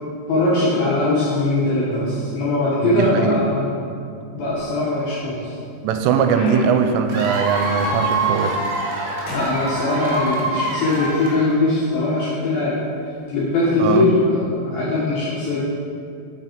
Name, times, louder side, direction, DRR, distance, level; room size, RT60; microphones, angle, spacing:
voice 1, 0.3-3.7 4.3-5.5 9.3-12.8 13.3-15.6, left 2 dB, 75° left, -8 dB, 2.1 m, -20 dB
voice 2, 2.8-3.4 5.8-8.6 13.8-14.1, right 6 dB, 90° right, 6 dB, 3.1 m, -20 dB
sound 1, 4.4-5.1 5.6-8.4 8.7-9.0 9.3-10.5 11.3-11.4 12.1-12.3 13.5-13.7, left 3 dB, 60° left, 1.8 m, -35 dB
Cheering / Applause / Crowd, 7.1-11.8, right 2 dB, 65° right, 2.3 m, -25 dB
8.1 x 6.5 x 4.5 m, 2.4 s
omnidirectional pair, 5.6 m